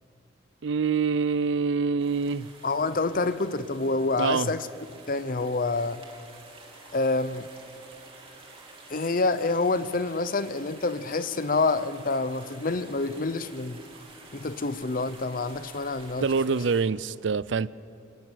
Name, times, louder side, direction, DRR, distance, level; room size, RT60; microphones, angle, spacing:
voice 1, 0.6-2.5 4.2-4.5 16.2-17.7, right 5 dB, 70° right, 0.5 m, -25 dB
sound 1, 2.0-16.8, right 3 dB, 30° right, 3.0 m, -50 dB
voice 2, 2.6-4.7 5.1-6.0 6.9-7.5 8.9-13.8 14.3-16.6, left 3 dB, 45° left, 0.8 m, -27 dB
27.5 x 12.0 x 9.1 m
head